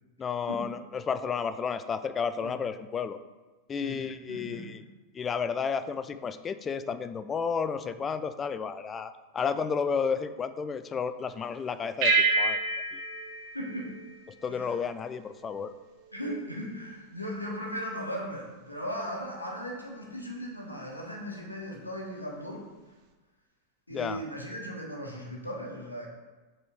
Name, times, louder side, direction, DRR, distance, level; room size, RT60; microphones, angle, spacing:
voice 1, 0.2-3.2 3.7-4.8 5.1-13.0 14.4-15.7 23.9-24.2, left 6 dB, 20° left, 12 dB, 0.3 m, -32 dB
voice 2, 3.8-4.7 7.8-7.9 13.4-14.0 14.5-14.8 16.1-22.6 23.9-26.1, equal, 85° left, -1 dB, 1.1 m, -37 dB
sound 1, 12.0-14.8, right 3 dB, 45° right, 0.7 m, -28 dB
5.4 x 4.1 x 5.0 m, 1.2 s
figure-of-eight pair, 90°, 0 cm